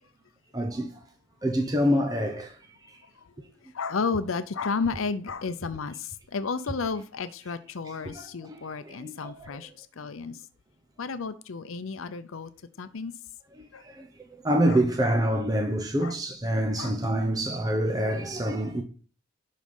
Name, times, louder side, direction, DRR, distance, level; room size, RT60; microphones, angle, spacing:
voice 1, 0.5-1.0 1.4-2.6 2.9-3.0 8.0-9.5 13.6-14.1 14.4-18.8, equal, 15° right, 0.8 m, -27 dB
voice 2, 3.6-10.4 11.0-12.5 12.8-13.1 13.7-13.8 14.7-14.8 15.1-15.2 16.0-16.1 16.8-16.9, left 4 dB, 80° left, 0.6 m, -32 dB
11.5 x 4.2 x 5.4 m
head